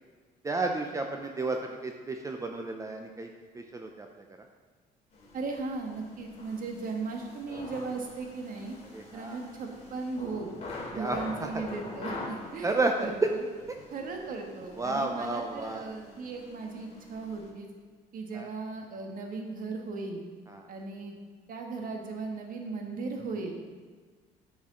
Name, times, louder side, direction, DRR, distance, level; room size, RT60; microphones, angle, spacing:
voice 1, 0.4-4.2 8.9-9.5 10.9-11.6 12.6-13.3 14.6-15.8 18.3-18.5 20.5-20.7, right 3 dB, 20° right, 3 dB, 0.6 m, -32 dB
sound 1, 5.1-17.5, left 2 dB, 40° left, 2.6 m, -45 dB
voice 2, 5.3-8.8 9.1-10.5 10.9-12.7 13.0-13.4 13.9-17.7 18.1-20.2 20.7-21.2 21.5-23.5, right 3 dB, 55° right, 2 dB, 1.4 m, -37 dB
9.8 x 6.2 x 3.8 m, 1.5 s
cardioid pair, 110°, 17 cm